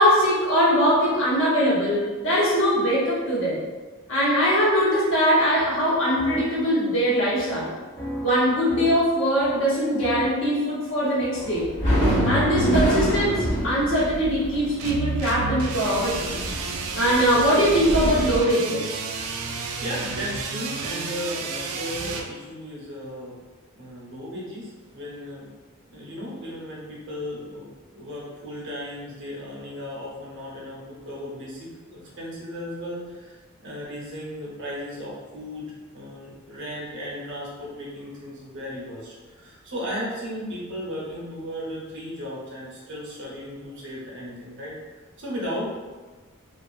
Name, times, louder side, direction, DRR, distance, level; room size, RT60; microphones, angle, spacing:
voice 1, 0.0-3.6 4.1-7.7 8.2-11.7 12.2-16.3 16.9-19.0, equal, 65° left, -8 dB, 1.0 m, -21 dB
sound 1, 5.3-13.0, equal, 5° left, 0.7 m, -36 dB
sound 2, 11.4-18.4, equal, 35° left, 1.0 m, -26 dB
sound 3, 14.8-22.3, right 4 dB, 90° right, 0.3 m, -31 dB
voice 2, 19.4-23.4 23.7-25.5 25.9-33.4 33.6-44.8 45.2-45.6, equal, 55° right, -5 dB, 0.8 m, -35 dB
2.5 x 2.4 x 2.4 m, 1.3 s
head